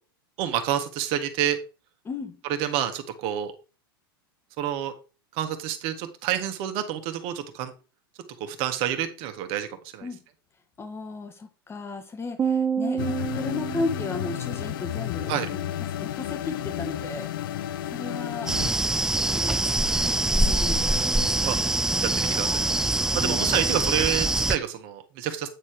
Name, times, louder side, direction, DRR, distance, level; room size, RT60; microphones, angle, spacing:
voice 1, 0.4-1.6 2.6-3.5 4.6-4.9 5.3-7.7 8.4-9.7 9.9-10.1 15.3-15.5 20.0-20.3 21.4-21.6 22.0-22.7 23.1-25.5, right 11 dB, 50° right, 1.7 m, -28 dB
voice 2, 2.0-2.5 10.0-10.2 10.8-18.5 19.0-19.6 20.1-21.0 23.1-23.7, left 3 dB, 20° left, 1.8 m, -35 dB
sound 1, 12.4-14.8, right 7 dB, 25° right, 0.9 m, -29 dB
sound 2, 13.0-18.7, left 12 dB, 65° left, 0.5 m, -32 dB
sound 3, 18.5-24.6, right 2 dB, 5° right, 0.3 m, -24 dB
9.2 x 4.2 x 4.9 m
hypercardioid pair, 95°, 12 cm